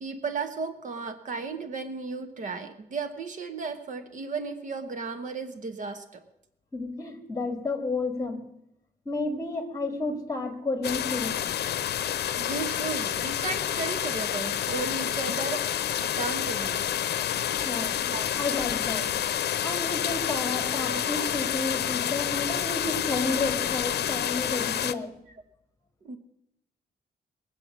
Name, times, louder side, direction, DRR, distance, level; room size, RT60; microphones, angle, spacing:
voice 1, 0.0-6.2 12.4-15.6 16.0-16.9 18.1-18.3 19.0-19.1 20.8-21.0 24.2-24.3 26.0-26.2, right 4 dB, 50° right, 9 dB, 1.2 m, -34 dB
voice 2, 6.7-8.4 9.1-11.4 17.6-18.0 18.4-19.1 19.6-25.1, left 3 dB, 20° left, 5 dB, 2.0 m, -31 dB
sound 1, 10.8-24.9, left 10 dB, 85° left, 0.6 m, -29 dB
21.5 x 7.7 x 7.3 m, 0.83 s
wide cardioid pair, 170°, 17 cm